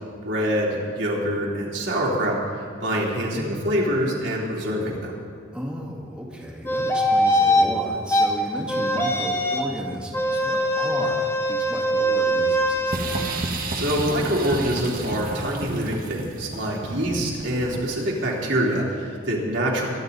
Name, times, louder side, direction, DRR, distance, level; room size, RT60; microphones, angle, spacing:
voice 1, 0.2-2.4 2.8-5.1 13.7-19.9, equal, 70° right, -4 dB, 3.3 m, -25 dB
voice 2, 5.5-13.3 16.9-17.3, equal, 5° right, -4 dB, 2.1 m, -34 dB
sound 1, 6.7-7.7 8.1-8.3 8.7-9.7 10.1-13.0, equal, 15° left, 1.2 m, -22 dB
sound 2, 12.9-18.1, right 2 dB, 50° right, 1.6 m, -31 dB
23.0 x 11.5 x 4.1 m, 2.1 s
head